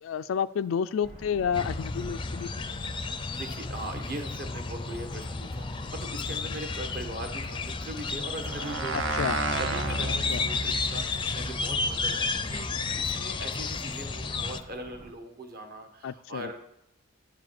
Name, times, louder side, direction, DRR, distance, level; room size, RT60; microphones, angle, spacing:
voice 1, 0.0-2.9 8.9-9.4 10.3-10.4 16.0-16.5, left 7 dB, 85° left, 12 dB, 0.3 m, -30 dB
sound 1, 1.0-15.1, equal, 30° right, 1.4 m, -48 dB
sound 2, 1.5-14.6, left 4 dB, 25° left, 0.5 m, -32 dB
voice 2, 3.2-9.1 9.6-16.6, right 1 dB, 50° right, 5 dB, 1.4 m, -40 dB
sound 3, 8.4-13.1, right 2 dB, 70° right, 0.9 m, -33 dB
11.0 x 4.9 x 7.5 m, 0.84 s
head